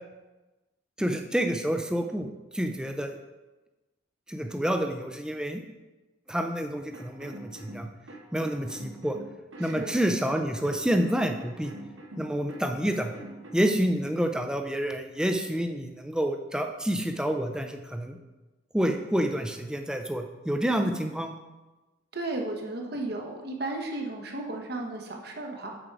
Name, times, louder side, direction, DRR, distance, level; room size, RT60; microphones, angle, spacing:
voice 1, 1.0-3.2 4.3-5.6 6.3-7.9 8.3-9.2 9.6-11.7 12.2-13.1 13.5-18.2 18.7-21.4, equal, 5° right, 5 dB, 0.5 m, -28 dB
sound 1, 6.9-13.5, right 1 dB, 80° right, 1.2 m, -44 dB
voice 2, 9.6-10.0 22.1-25.8, right 2 dB, 55° right, 2 dB, 1.1 m, -34 dB
7.6 x 5.2 x 4.7 m, 1.1 s
head